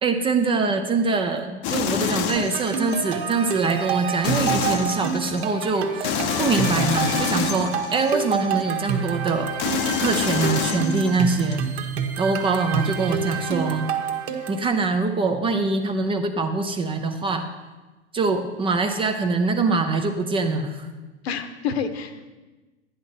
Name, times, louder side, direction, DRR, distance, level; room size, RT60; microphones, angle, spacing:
voice 1, 0.0-9.6 10.0-11.6 12.2-13.9 14.5-17.5 18.1-20.9, right 3 dB, 15° right, 6 dB, 0.6 m, -24 dB
sound 1, 1.6-3.2 4.2-5.4 6.0-8.6 9.6-11.6, left 8 dB, 30° left, 0.8 m, -27 dB
sound 2, 2.4-14.7, right 7 dB, 60° right, 1.6 m, -28 dB
voice 2, 21.2-22.3, left 6 dB, 60° left, 9 dB, 1.2 m, -29 dB
11.5 x 10.0 x 4.3 m, 1.2 s
hypercardioid pair, 120°, 35 cm